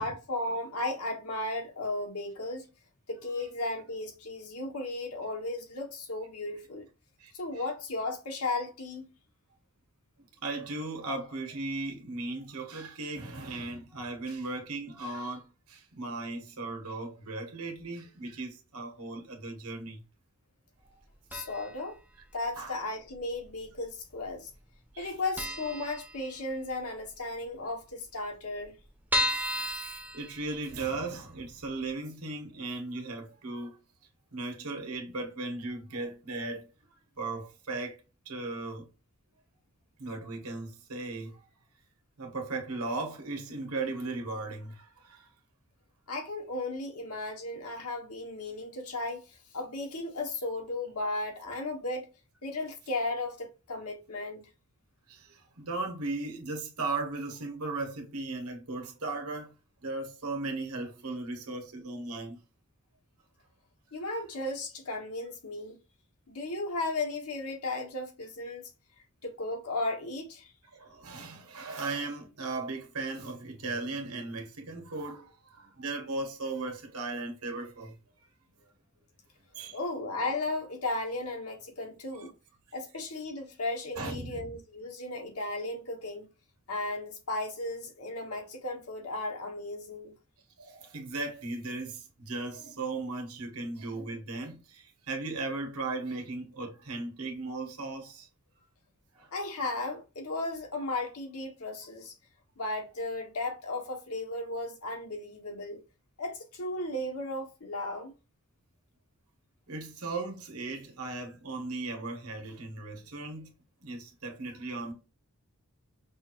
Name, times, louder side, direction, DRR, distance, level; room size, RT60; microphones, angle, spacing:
voice 1, 0.0-2.7 3.1-6.9 7.3-9.0 21.3-22.0 22.3-24.5 25.0-28.8 46.1-52.1 52.4-54.5 63.9-65.8 66.3-68.7 69.2-70.5 79.7-82.3 82.7-86.3 86.7-90.1 99.3-102.1 102.6-105.8 106.2-108.1, left 2 dB, 85° left, 1.3 m, -35 dB
voice 2, 7.2-7.6 10.4-20.0 22.6-22.8 24.9-25.1 29.3-33.8 34.3-36.6 37.2-38.9 40.0-41.5 42.2-45.3 55.1-59.5 59.8-62.4 70.7-78.0 79.5-79.8 82.1-82.3 83.9-84.4 90.6-98.3 99.1-99.3 109.7-113.5 113.8-114.9, right 3 dB, 80° right, 1.3 m, -37 dB
sound 1, 21.3-21.8 22.1-22.2 23.1-23.8 24.1-24.3 24.6-24.7 25.0-25.1 25.4-26.7 27.1-27.2 27.4-27.5 27.7-27.8 28.3-30.9 31.4-31.5 31.9-32.0, equal, 10° right, 0.6 m, -33 dB
5.5 x 2.5 x 3.0 m
head